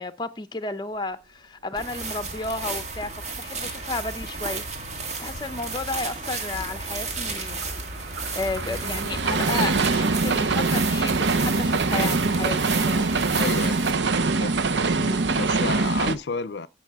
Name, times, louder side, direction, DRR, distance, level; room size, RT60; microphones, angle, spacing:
voice 1, 0.0-3.1 3.4-4.7 5.2-7.6 8.3-13.2 15.0-15.3, left 3 dB, 25° left, 0.7 m, -32 dB
sound 1, 1.7-13.9, right 3 dB, 40° right, 1.9 m, -33 dB
sound 2, 6.8-16.2, right 3 dB, 85° right, 0.8 m, -24 dB
voice 2, 13.3-13.8 14.2-14.6 15.3-16.7, left 4 dB, 75° left, 0.6 m, -31 dB
16.0 x 5.5 x 3.6 m
head